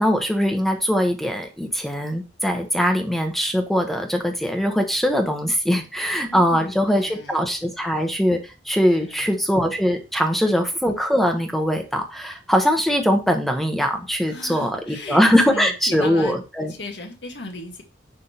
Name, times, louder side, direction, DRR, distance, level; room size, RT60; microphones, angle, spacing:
voice 1, 0.0-8.4 8.6-16.7, equal, ahead, 4 dB, 1.3 m, -21 dB
voice 2, 6.3-7.4 9.0-9.5 14.2-17.8, left 2 dB, 75° left, 4 dB, 1.8 m, -37 dB
10.5 x 3.9 x 4.4 m, 0.29 s
head